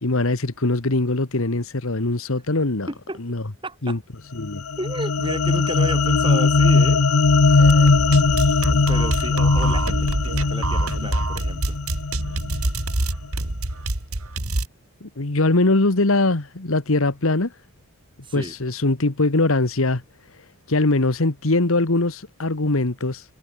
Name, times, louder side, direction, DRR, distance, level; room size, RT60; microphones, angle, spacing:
voice 1, 0.0-2.9 3.2-3.4 3.8-4.0 4.3-4.6 15.0-17.5 18.3-20.0 20.7-23.2, left 2 dB, 70° left, 1.5 m, -21 dB
voice 2, 2.9-3.2 3.6-4.0 4.8-7.0 7.4-7.8 8.9-11.8 18.2-18.5, right 1 dB, 20° right, 5.1 m, -32 dB
sound 1, 4.4-12.8, left 3 dB, 85° left, 0.9 m, -19 dB
sound 2, 7.6-14.7, right 1 dB, 85° right, 2.9 m, -25 dB
head